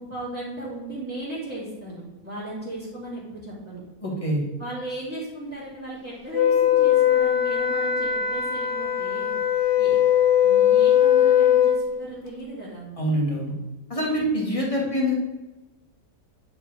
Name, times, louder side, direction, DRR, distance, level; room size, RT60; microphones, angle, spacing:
voice 1, 0.0-3.8 4.6-10.0 10.4-12.9 14.7-14.9, right 1 dB, 5° right, -11 dB, 2.5 m, -36 dB
voice 2, 4.0-4.4 13.0-13.6 13.9-15.1, equal, 20° left, -3 dB, 1.9 m, -25 dB
Wind instrument woodwind instrument, 6.3-11.8, left 10 dB, 45° left, 1.3 m, -20 dB
9.7 x 4.6 x 4.8 m, 1.1 s
omnidirectional pair, 1.9 m